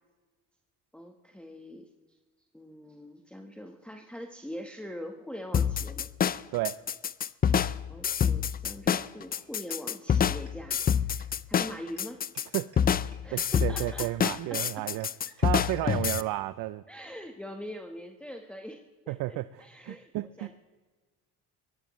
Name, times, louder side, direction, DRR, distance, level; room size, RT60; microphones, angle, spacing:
voice 1, 0.9-1.9 2.5-6.1 7.9-12.2 13.2-14.9 15.3-16.0 16.9-20.5, equal, 5° left, 3 dB, 1.2 m, -43 dB
sound 1, 5.5-16.2, left 8 dB, 25° left, 0.4 m, -27 dB
sound 2, 9.3-9.4 9.7-9.8 10.1-10.2 10.5-10.6 10.8-10.9 11.2-11.3 11.6-11.7 12.0-12.1 12.3-12.4 12.7-12.8 13.1-13.2 13.5-13.6 13.9-14.0 14.3-14.4 14.6-14.7 15.0-15.1 15.4-15.5 15.8-15.9 16.1-16.2, right 5 dB, 40° right, 4.2 m, -55 dB
voice 2, 13.3-15.1 15.4-16.8 19.1-20.5, right 17 dB, 70° right, 15 dB, 0.6 m, -32 dB
22.5 x 18.0 x 3.1 m, 1.3 s
cardioid pair, 95°, 36 cm